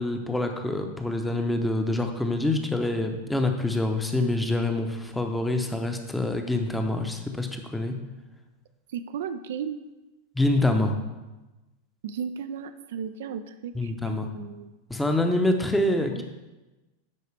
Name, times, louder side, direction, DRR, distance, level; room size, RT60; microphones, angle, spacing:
voice 1, 0.0-8.0 10.3-10.9 13.7-14.3 14.9-16.2, left 2 dB, 5° left, 5 dB, 0.8 m, -26 dB
voice 2, 8.9-9.8 12.0-14.7 16.1-16.2, right 7 dB, 55° right, 10 dB, 0.3 m, -35 dB
11.0 x 4.7 x 3.3 m, 1.1 s
figure-of-eight pair, 90°, 0 cm